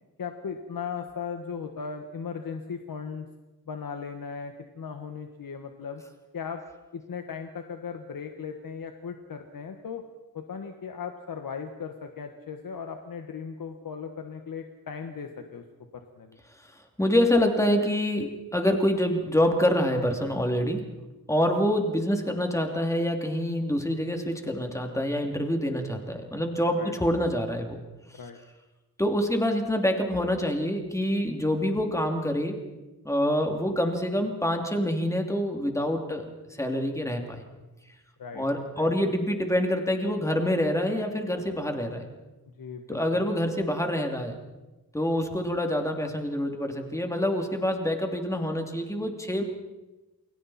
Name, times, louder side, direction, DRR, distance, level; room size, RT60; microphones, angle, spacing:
voice 1, 0.2-3.3 3.7-6.0 6.3-6.6 6.9-10.0 10.3-15.6 15.9-16.4 26.8-26.9 28.1-28.4 38.2-38.4 38.8-39.1 42.5-43.2, left 6 dB, 60° left, 5 dB, 1.6 m, -37 dB
voice 2, 17.0-20.8 21.3-27.8 29.0-32.6 33.0-36.3 36.6-37.4 38.3-42.0 42.9-44.4 44.9-49.4, equal, 10° left, 3 dB, 2.8 m, -26 dB
29.0 x 22.0 x 4.3 m, 1.1 s
wide cardioid pair, 120°, 37 cm